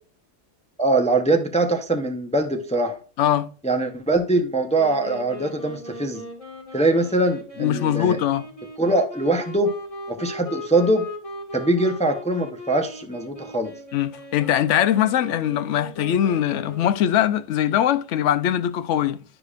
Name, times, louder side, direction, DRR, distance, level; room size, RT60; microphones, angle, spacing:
voice 1, 0.8-3.0 3.6-6.2 6.7-8.2 8.8-9.7 10.1-11.1 11.5-13.7, right 2 dB, 10° left, 0.5 m, -22 dB
voice 2, 3.2-3.5 7.6-8.5 13.9-19.2, left 10 dB, 75° left, 0.9 m, -21 dB
Wind instrument woodwind instrument, 4.7-17.2, left 1 dB, 30° left, 1.9 m, -38 dB
11.0 x 5.0 x 2.4 m
omnidirectional pair, 1.3 m